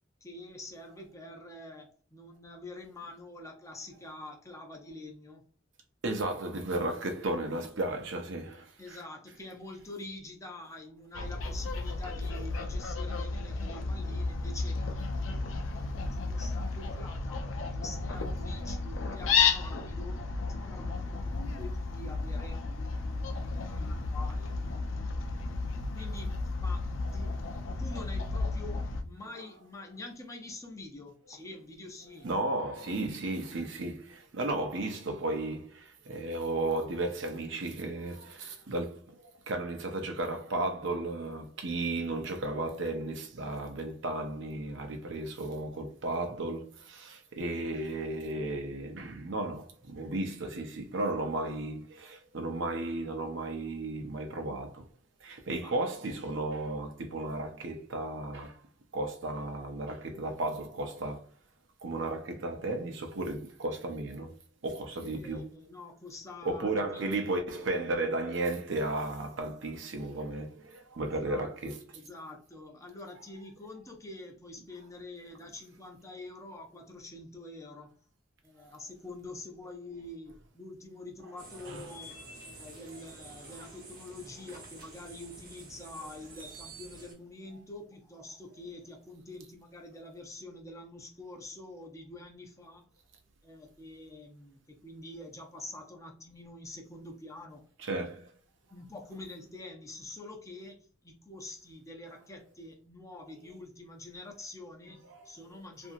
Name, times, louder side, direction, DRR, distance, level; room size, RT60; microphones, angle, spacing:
voice 1, 0.2-5.4 8.8-14.9 15.9-17.4 17.7-20.2 20.5-22.8 23.2-24.6 25.9-27.4 27.8-32.3 55.6-55.8 65.0-67.0 71.0-77.9 78.4-92.9 93.4-97.7 98.7-105.9, left 2 dB, 15° left, 0.6 m, -46 dB
voice 2, 6.0-9.0 32.2-54.9 55.2-58.6 58.9-61.3 61.8-64.4 64.6-65.5 66.4-71.8 81.7-81.8 97.8-98.3 105.1-105.3, right 2 dB, 65° right, 0.6 m, -34 dB
Fowl, 11.1-29.0, left 4 dB, 90° left, 0.5 m, -33 dB
sound 1, 81.4-87.1, right 2 dB, 45° right, 1.0 m, -49 dB
2.8 x 2.5 x 2.5 m
head